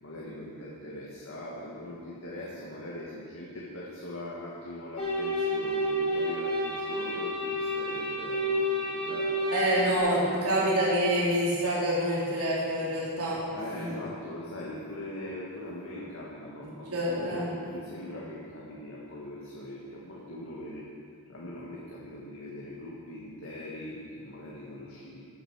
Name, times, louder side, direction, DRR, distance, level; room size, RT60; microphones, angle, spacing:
voice 1, 0.0-9.4 9.7-9.8 10.1-10.5 13.6-16.9 17.2-20.9 21.3-25.2, left 1 dB, 65° left, -5 dB, 1.9 m, -41 dB
sound 1, 5.0-10.0, equal, 30° left, 3.9 m, -30 dB
voice 2, 9.5-13.4 13.7-13.9 16.9-17.5, right 1 dB, 90° right, -7 dB, 3.9 m, -27 dB
16.0 x 9.4 x 4.8 m, 2.3 s
head